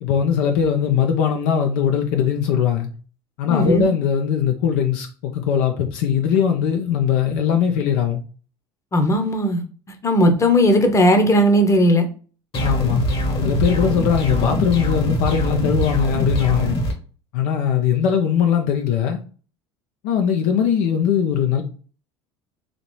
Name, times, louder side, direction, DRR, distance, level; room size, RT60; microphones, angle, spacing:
voice 1, 0.0-2.9 3.4-8.2 12.6-13.1 13.4-16.8 17.3-19.2 20.0-21.6, left 8 dB, 65° left, 0.6 m, -20 dB
voice 2, 3.5-3.9 8.9-9.6 10.0-12.1, equal, 20° left, 0.9 m, -16 dB
sound 1, 12.5-16.9, equal, 40° left, 1.2 m, -22 dB
4.1 x 2.9 x 3.1 m
hypercardioid pair, 70°, 14 cm